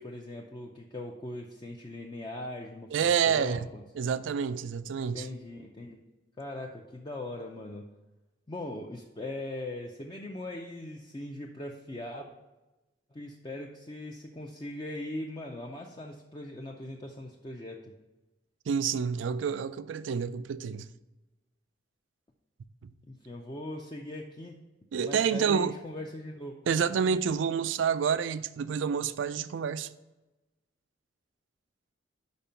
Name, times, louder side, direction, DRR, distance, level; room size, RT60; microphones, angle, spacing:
voice 1, 0.0-3.8 5.1-6.0 6.4-7.9 8.5-12.4 13.1-17.9 23.0-24.6 25.0-27.2, left 1 dB, 25° left, 0.5 m, -40 dB
voice 2, 2.9-3.7 4.0-5.3 18.7-20.9 22.8-22.9 24.9-25.7 26.7-29.9, right 7 dB, 80° right, 0.3 m, -28 dB
5.3 x 5.2 x 5.6 m
head